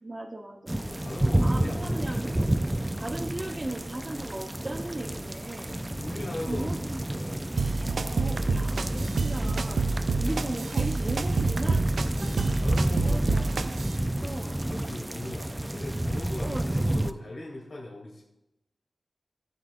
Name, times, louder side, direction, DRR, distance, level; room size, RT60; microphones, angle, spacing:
voice 1, 0.0-0.8 1.4-2.4 2.9-5.8 6.5-7.0 7.8-9.8 10.2-11.8 12.2-12.5 13.0-13.7 14.2-14.6 16.4-16.9, right 1 dB, 30° right, -3 dB, 0.9 m, -37 dB
sound 1, 0.7-17.1, right 1 dB, 15° right, 0.4 m, -30 dB
voice 2, 0.8-2.4 5.9-7.5 10.0-10.3 12.5-13.5 14.1-18.2, left 1 dB, 70° left, -2 dB, 2.7 m, -40 dB
sound 2, 7.6-14.0, right 4 dB, 80° right, 0.4 m, -29 dB
18.0 x 7.5 x 2.5 m, 0.92 s
wide cardioid pair, 100°, 0 cm